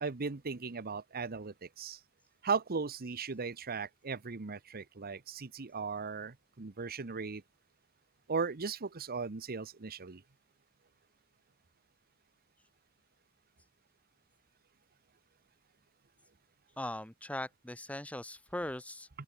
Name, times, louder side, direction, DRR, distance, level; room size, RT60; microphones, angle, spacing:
voice 1, 0.0-2.0 2.4-7.4 8.3-10.2, right 5 dB, 45° right, 0.9 m, -37 dB
voice 2, 16.8-19.1, left 1 dB, 5° left, 1.4 m, -40 dB
open air
head